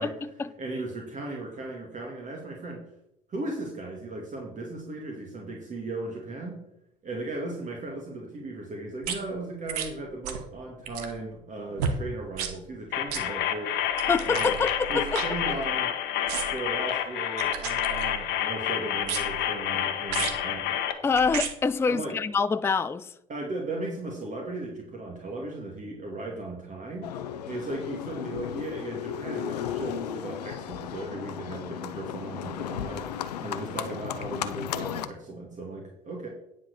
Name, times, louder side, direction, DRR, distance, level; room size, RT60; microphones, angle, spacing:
voice 1, 0.0-0.5 14.1-15.2 21.0-23.1, left 5 dB, 10° left, 0.4 m, -26 dB
voice 2, 0.6-2.8 3.3-6.6 7.0-13.7 14.2-14.6 14.9-15.9 16.5-20.8 21.9-22.2 23.3-27.1 27.5-33.1 33.4-36.3, right 2 dB, 40° right, 2.2 m, -36 dB
sound 1, 9.0-9.2 9.7-9.9 10.2-10.5 10.8-11.2 11.8-12.0 12.3-12.5 13.1-13.2 13.9-15.8 16.3-16.7 17.4-18.3 19.0-19.5 20.1-20.4 21.1-21.5 22.3-22.4, right 7 dB, 75° right, 1.1 m, -33 dB
sound 2, 12.9-20.9, left 10 dB, 60° left, 1.1 m, -29 dB
Livestock farm animals working animals, 27.0-35.1, left 10 dB, 80° left, 0.6 m, -35 dB
9.8 x 5.1 x 6.6 m
figure-of-eight pair, 55°, 20 cm